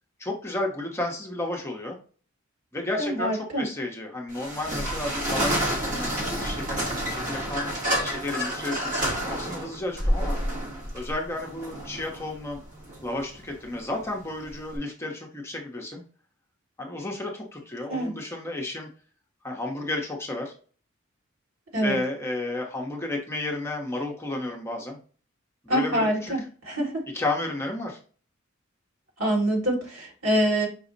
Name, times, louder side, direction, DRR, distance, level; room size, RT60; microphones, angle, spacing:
voice 1, 0.2-2.0 2.7-6.8 7.1-7.7 8.0-10.4 10.9-12.6 13.0-16.0 16.8-18.9 19.4-20.5 21.8-25.0 25.6-26.3 27.1-28.0, left 2 dB, 10° left, 0 dB, 0.7 m, -32 dB
voice 2, 3.0-3.6 17.9-18.1 21.7-22.0 25.7-27.0 29.2-30.7, right 1 dB, 70° right, -1 dB, 1.8 m, -25 dB
sound 1, 4.3-14.8, equal, 40° right, 1.0 m, -29 dB
5.0 x 2.0 x 3.8 m, 0.40 s
head